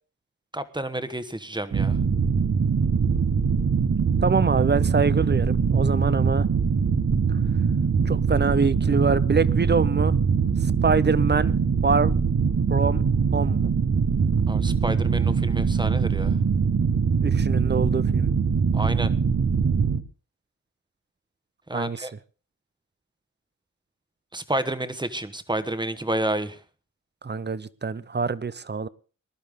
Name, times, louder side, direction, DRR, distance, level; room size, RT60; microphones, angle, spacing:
voice 1, 0.5-2.0 14.5-16.4 18.7-19.1 21.7-22.1 24.3-26.6, right 1 dB, 15° right, 11 dB, 1.3 m, -30 dB
sound 1, 1.7-20.0, right 5 dB, 60° right, 1.2 m, -22 dB
voice 2, 4.2-6.5 7.3-7.4 8.0-10.2 10.6-11.5 11.8-12.2 12.7-13.0 13.3-13.7 17.2-18.3 21.7-22.1 27.2-28.9, right 4 dB, 35° right, 18 dB, 0.7 m, -25 dB
20.0 x 11.5 x 3.7 m, 0.35 s
wide cardioid pair, 85°, 31 cm